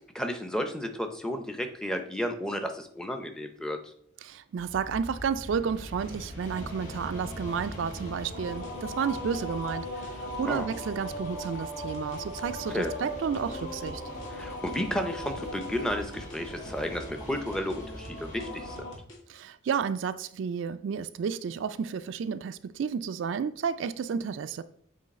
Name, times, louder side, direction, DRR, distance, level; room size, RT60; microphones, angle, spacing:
voice 1, 0.1-3.8 10.5-10.7 12.7-12.9 14.3-18.8, equal, 5° left, 0.5 m, -32 dB
voice 2, 4.2-14.0 19.3-24.6, right 6 dB, 75° right, 0.3 m, -32 dB
sound 1, 4.6-18.8, equal, 40° left, 1.7 m, -44 dB
sound 2, 6.4-19.0, left 1 dB, 60° left, 1.0 m, -40 dB
sound 3, 8.3-12.9 13.3-16.4 16.6-19.4, left 1 dB, 80° left, 1.9 m, -50 dB
7.6 x 3.2 x 4.1 m
head